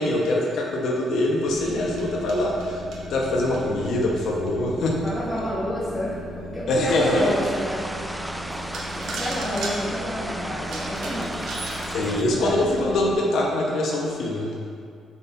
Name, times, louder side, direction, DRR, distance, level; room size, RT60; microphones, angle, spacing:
voice 1, 0.0-2.8 3.1-5.0 6.7-7.4 11.9-14.5, left 1 dB, 70° left, -1 dB, 0.9 m, -23 dB
sound 1, 1.5-13.1, right 1 dB, 35° left, 1.5 m, -38 dB
sound 2, 1.5-4.9 5.5-5.6 6.1-6.2 6.8-6.9 8.0-8.1 8.5-12.3, right 3 dB, 70° right, 1.0 m, -37 dB
voice 2, 5.0-6.2 6.5-7.8 8.9-11.6 12.1-12.6, equal, 20° left, -9 dB, 1.4 m, -30 dB
sound 3, 6.9-12.2, equal, 5° right, 0.4 m, -34 dB
7.4 x 4.3 x 4.3 m, 2.2 s
cardioid pair, 90°, 0 cm